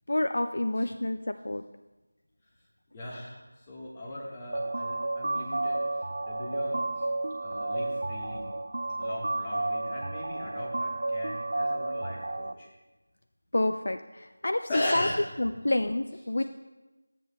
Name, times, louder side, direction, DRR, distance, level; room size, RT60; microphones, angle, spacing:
voice 1, 0.1-1.6 13.5-15.1 15.4-16.4, left 1 dB, 60° left, 8 dB, 0.3 m, -28 dB
voice 2, 2.9-3.4 3.7-5.8 6.3-6.8 7.4-8.5 9.0-12.7 14.7-15.5 16.4-16.5, left 1 dB, 15° left, -5 dB, 1.3 m, -37 dB
sound 1, 4.5-12.5, right 2 dB, 55° right, 0.3 m, -32 dB
13.5 x 8.3 x 2.2 m, 1.1 s
figure-of-eight pair, 170°, 0 cm